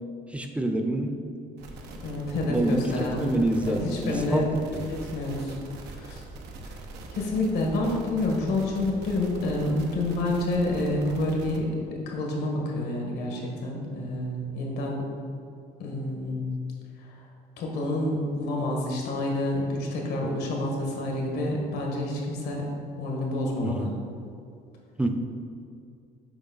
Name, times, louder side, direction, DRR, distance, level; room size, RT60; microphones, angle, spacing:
voice 1, 0.3-1.2 2.5-4.9 23.6-24.0 25.0-25.1, right 1 dB, 5° right, 5 dB, 0.5 m, -27 dB
sound 1, 1.6-11.6, right 2 dB, 90° right, 0.8 m, -42 dB
voice 2, 2.0-3.3 3.7-4.4 4.9-5.6 5.9-6.2 7.1-15.0 15.8-16.6 17.0-17.1 17.6-22.6 23.0-23.9, left 1 dB, 75° left, -1 dB, 1.5 m, -28 dB
7.1 x 5.2 x 4.0 m, 2.4 s
cardioid pair, 110°, 17 cm